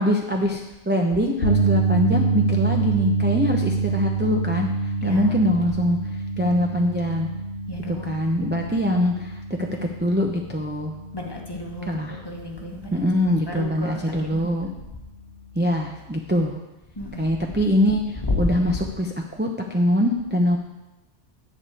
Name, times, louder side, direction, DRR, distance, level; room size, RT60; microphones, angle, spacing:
voice 1, 0.0-4.7 5.0-6.0 6.4-7.3 7.9-9.7 10.0-10.9 11.9-12.2 12.9-14.7 15.5-16.6 17.2-20.6, equal, 10° right, 0 dB, 0.7 m, -23 dB
sound 1, 1.4-13.7 14.0-14.3 16.5-16.6, right 4 dB, 65° left, 1.4 m, -26 dB
voice 2, 5.0-5.3 7.7-8.2 11.1-13.0 13.3-14.7 17.0-17.3 18.2-18.5, left 2 dB, 20° left, 0 dB, 1.4 m, -32 dB
10.5 x 4.9 x 8.3 m, 0.97 s
omnidirectional pair, 1.2 m